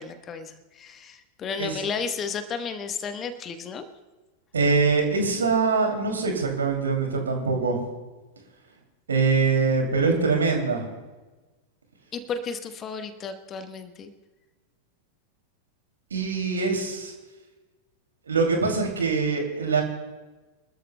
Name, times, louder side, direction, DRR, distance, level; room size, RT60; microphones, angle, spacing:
voice 1, 0.0-3.8 12.1-14.1, left 5 dB, 25° left, 9 dB, 1.2 m, -33 dB
voice 2, 4.5-7.8 9.1-10.8 16.1-17.1 18.3-19.8, right 4 dB, 70° right, 3 dB, 2.6 m, -23 dB
25.5 x 13.0 x 2.2 m, 1.2 s
figure-of-eight pair, 90°, 0 cm